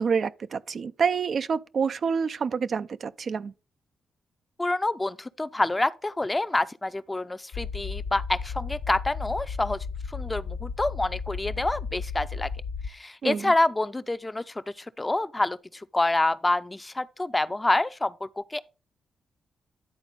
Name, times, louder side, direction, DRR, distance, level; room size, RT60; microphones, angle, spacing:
voice 1, 0.0-3.5 13.2-13.5, right 6 dB, 60° right, 0.4 m, -27 dB
voice 2, 4.6-12.5 12.9-18.6, left 2 dB, 20° left, 0.6 m, -27 dB
sound 1, 7.5-12.9, left 5 dB, 75° left, 0.6 m, -34 dB
11.0 x 4.1 x 5.2 m
supercardioid pair, 60°, 0 cm